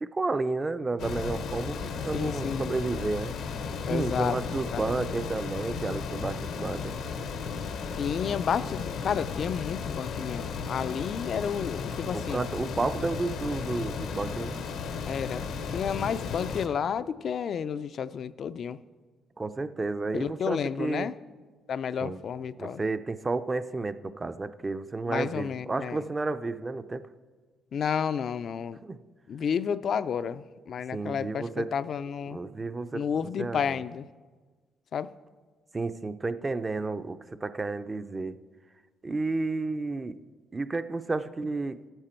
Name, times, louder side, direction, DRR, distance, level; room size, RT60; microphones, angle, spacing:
voice 1, 0.0-3.4 3.9-7.0 12.1-14.6 19.4-21.1 22.0-22.2 22.6-27.1 28.8-29.0 30.9-31.7 32.3-33.8 35.7-38.4 39.0-40.2 40.5-41.8, right 3 dB, 25° right, 11 dB, 0.4 m, -31 dB
sound 1, 1.0-16.7, left 5 dB, 80° left, 0.8 m, -34 dB
voice 2, 2.1-2.7 3.9-4.4 4.7-4.8 7.9-12.5 14.4-14.5 15.1-18.8 20.2-21.1 21.7-22.8 25.1-26.0 27.7-28.8 29.3-32.4 32.9-34.1 34.9-35.1, left 7 dB, 55° left, 14 dB, 0.4 m, -31 dB
13.5 x 8.9 x 4.4 m, 1.4 s
cardioid pair, 105°, 0 cm